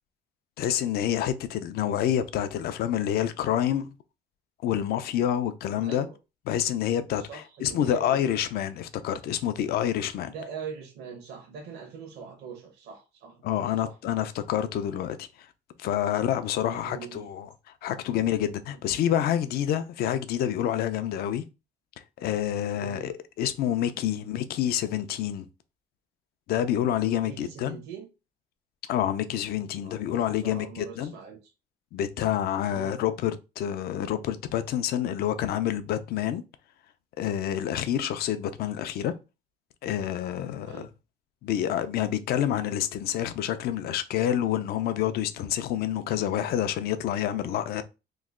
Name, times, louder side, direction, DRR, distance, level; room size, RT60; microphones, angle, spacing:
voice 1, 0.6-3.9 4.6-6.1 6.5-10.3 13.4-15.3 15.8-17.5 17.8-21.4 22.2-25.5 26.5-27.8 28.9-31.1 31.9-36.4 37.2-39.1 39.8-40.9 41.4-47.8, left 10 dB, 65° left, 0.4 m, -28 dB
voice 2, 5.8-6.2 7.1-8.5 10.3-13.5 13.8-14.0 16.7-17.3 22.6-23.1 24.2-24.3 27.2-28.1 29.8-31.5 32.7-33.0 37.9-38.0 40.7-40.9, right 6 dB, 80° right, 1.1 m, -42 dB
3.1 x 2.2 x 3.6 m
cardioid pair, 110°, 17 cm